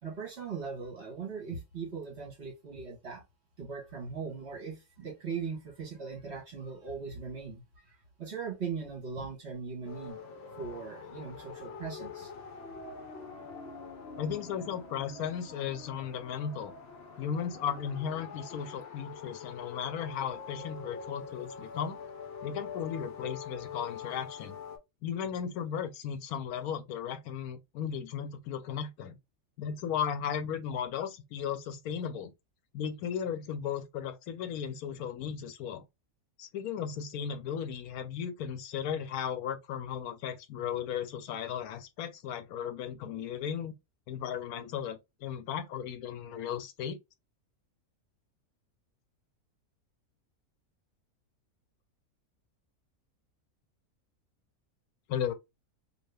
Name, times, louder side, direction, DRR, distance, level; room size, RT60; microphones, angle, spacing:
voice 1, 0.0-3.2 3.6-10.2 10.6-12.3, right 5 dB, 50° right, 1.3 m, -39 dB
sound 1, 9.8-24.8, left 5 dB, 55° left, 0.9 m, -45 dB
voice 2, 14.2-16.7 17.2-22.0 22.4-24.6 25.0-29.2 29.6-32.3 32.7-35.8 36.4-43.7 44.1-47.0 55.1-55.3, left 8 dB, 80° left, 1.0 m, -36 dB
2.7 x 2.7 x 3.2 m
omnidirectional pair, 1.6 m